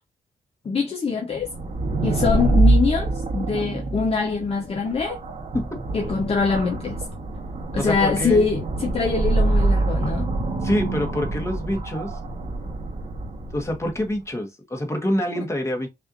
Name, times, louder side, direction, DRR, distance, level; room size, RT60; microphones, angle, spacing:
voice 1, 0.6-1.5 2.0-5.2 5.9-7.0 7.7-10.3, left 4 dB, 40° left, 0.9 m, -23 dB
sound 1, 1.4-14.0, right 2 dB, 55° right, 1.1 m, -25 dB
voice 2, 7.8-8.5 10.6-12.2 13.5-15.9, left 1 dB, 20° left, 1.3 m, -26 dB
5.6 x 2.6 x 2.6 m
cardioid pair, 100°, 15 cm